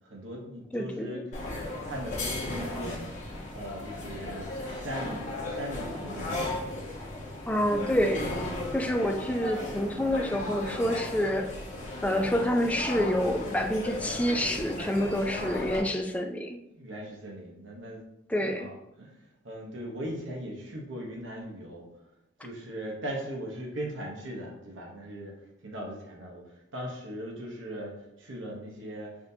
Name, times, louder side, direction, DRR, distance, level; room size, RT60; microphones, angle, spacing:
voice 1, 0.0-1.2 1.8-3.1 3.5-6.6 16.7-18.1 18.4-21.9 22.4-29.2, equal, 80° right, -1 dB, 0.9 m, -39 dB
voice 2, 0.7-1.2 7.5-8.3 8.7-11.5 12.0-16.6 18.3-18.7, equal, 5° left, 4 dB, 0.3 m, -28 dB
sound 1, 1.3-15.8, left 2 dB, 40° left, 1.1 m, -36 dB
5.8 x 2.7 x 2.7 m, 0.84 s
head